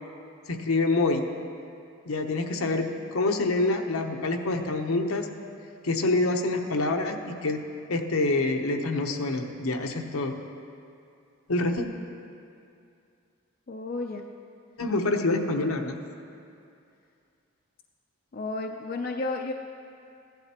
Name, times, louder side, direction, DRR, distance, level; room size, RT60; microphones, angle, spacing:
voice 1, 0.5-1.2 2.1-5.3 5.8-7.6 7.9-10.4 11.5-11.8 14.8-16.0, left 2 dB, 75° left, 4 dB, 0.8 m, -26 dB
voice 2, 13.7-14.2 18.3-19.5, left 3 dB, 40° left, 2 dB, 0.4 m, -32 dB
16.0 x 11.5 x 2.9 m, 2.5 s
head